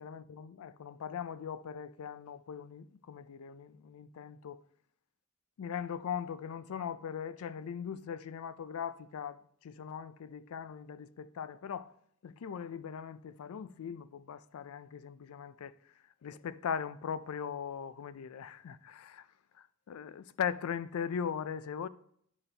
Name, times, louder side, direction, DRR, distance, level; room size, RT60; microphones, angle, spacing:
voice 1, 0.0-4.6 5.6-11.9 12.2-15.7 16.2-19.3 19.6-21.9, left 7 dB, 90° left, 0.4 m, -40 dB
10.5 x 4.2 x 3.3 m
head